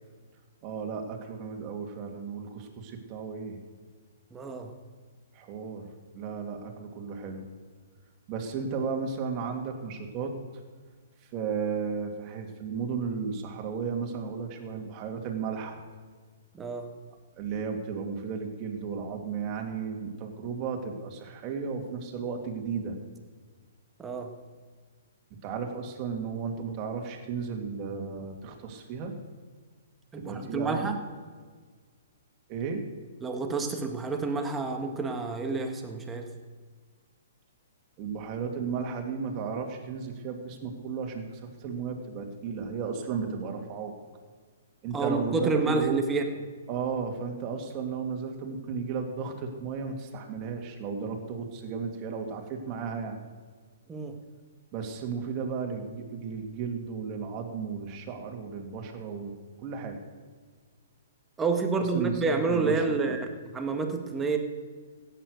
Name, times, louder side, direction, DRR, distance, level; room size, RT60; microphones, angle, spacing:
voice 1, 0.6-3.6 5.3-5.9 6.1-7.5 8.3-10.6 11.3-15.8 17.4-23.0 25.4-29.1 30.1-30.9 32.5-32.8 38.0-44.0 44.8-46.0 46.7-53.2 54.7-59.3 59.6-60.0 61.9-63.2, right 5 dB, 35° right, 2 dB, 2.4 m, -34 dB
voice 2, 4.3-4.7 16.5-16.9 24.0-24.3 30.1-31.0 33.2-36.3 44.9-46.2 53.9-54.1 61.4-63.3 63.5-64.4, right 4 dB, 15° right, 4 dB, 1.7 m, -29 dB
16.5 x 9.1 x 6.5 m, 1.5 s
figure-of-eight pair, 120°, 0 cm